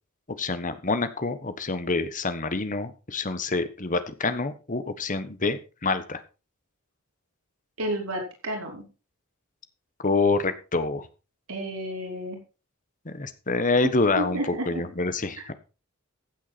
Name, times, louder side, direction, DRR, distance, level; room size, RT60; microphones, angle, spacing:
voice 1, 0.4-6.2 10.0-11.1 13.0-15.5, left 3 dB, 40° left, 11 dB, 1.3 m, -27 dB
voice 2, 7.8-8.8 11.5-12.4 14.2-14.8, right 1 dB, 90° right, 1 dB, 5.0 m, -31 dB
15.5 x 8.2 x 4.3 m, 0.32 s
head